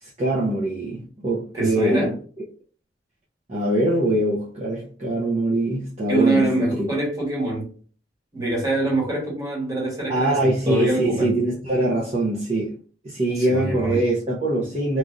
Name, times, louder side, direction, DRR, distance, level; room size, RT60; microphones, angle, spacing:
voice 1, 0.0-2.2 3.5-6.9 10.1-12.8 13.0-15.0, right 1 dB, 40° right, 0.6 m, -23 dB
voice 2, 1.5-2.1 6.1-7.7 8.3-11.3 13.4-14.0, right 2 dB, 20° right, 1.3 m, -24 dB
3.1 x 2.4 x 2.5 m
head